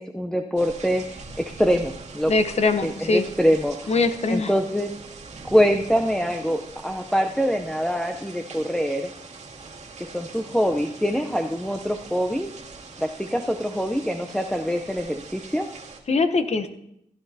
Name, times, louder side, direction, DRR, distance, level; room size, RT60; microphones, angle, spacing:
voice 1, 0.0-2.3 2.8-3.9 4.3-4.9 5.4-9.1 10.0-12.5 13.0-15.7, equal, 5° left, 4 dB, 0.6 m, -24 dB
sound 1, 0.6-16.0, right 4 dB, 60° right, 1.7 m, -42 dB
voice 2, 2.3-3.3 3.9-4.5 16.1-16.7, left 3 dB, 55° left, 9 dB, 0.9 m, -22 dB
15.5 x 10.5 x 2.8 m, 0.75 s
cardioid pair, 70°, 13 cm